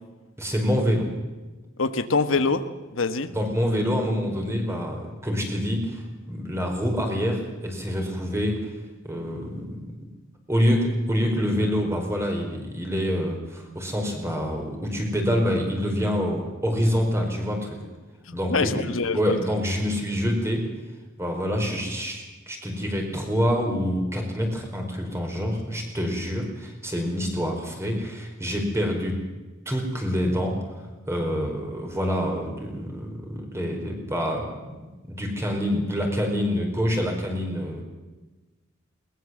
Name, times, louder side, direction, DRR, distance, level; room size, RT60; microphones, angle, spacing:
voice 1, 0.4-1.1 3.3-8.7 9.0-9.9 10.5-17.8 18.3-18.9 19.1-20.7 21.2-29.2 29.6-30.6 31.1-34.7 35.1-37.8, equal, 15° right, 2 dB, 4.8 m, -26 dB
voice 2, 1.8-2.6 2.9-3.3 18.3-19.4, left 4 dB, 85° left, 10 dB, 1.3 m, -24 dB
21.0 x 20.0 x 7.8 m, 1.2 s
head